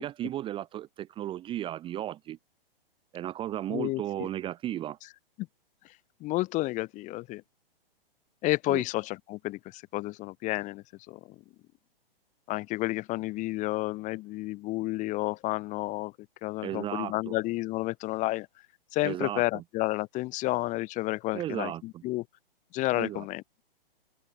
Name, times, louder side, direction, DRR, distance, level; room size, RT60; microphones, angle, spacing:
voice 1, 0.0-2.4 3.1-5.0 8.7-8.8 16.6-17.4 19.0-19.6 21.3-22.0 23.0-23.2, right 12 dB, 15° right, 0.9 m, -35 dB
voice 2, 3.7-4.3 6.2-7.4 8.4-11.2 12.5-16.1 16.4-18.5 18.9-22.2 22.7-23.4, left 19 dB, 25° left, 1.3 m, -31 dB
hypercardioid pair, 125°, 30 cm